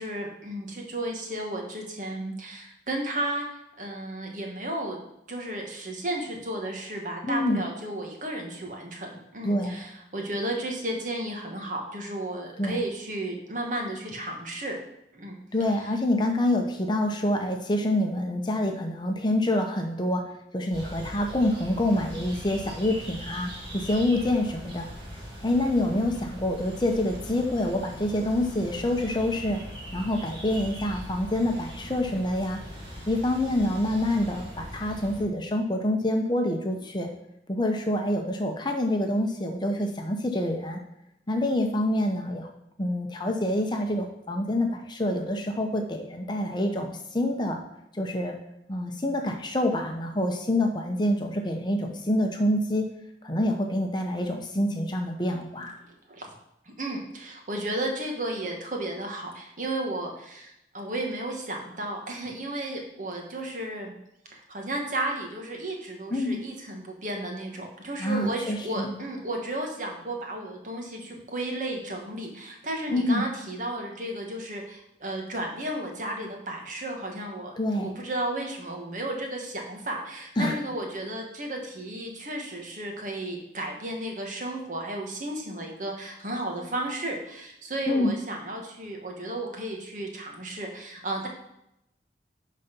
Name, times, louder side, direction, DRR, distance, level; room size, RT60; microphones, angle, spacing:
voice 1, 0.0-3.5 3.8-5.0 5.3-14.8 15.1-15.4 55.9-56.3 56.6-63.9 64.3-91.3, right 1 dB, 45° right, 1 dB, 1.7 m, -33 dB
voice 2, 7.2-7.6 9.4-9.8 12.6-12.8 15.5-20.2 20.5-24.9 25.4-29.6 29.9-32.6 33.1-37.1 37.5-40.8 41.3-42.5 42.8-47.6 47.9-48.4 48.7-52.9 53.2-55.7 66.1-66.4 68.0-69.0 72.9-73.2 77.6-77.9 80.4-80.6 87.9-88.1, left 1 dB, 25° left, 3 dB, 0.9 m, -26 dB
sound 1, 20.7-35.2, equal, 30° right, 2.4 m, -41 dB
11.5 x 4.2 x 5.3 m, 0.82 s
head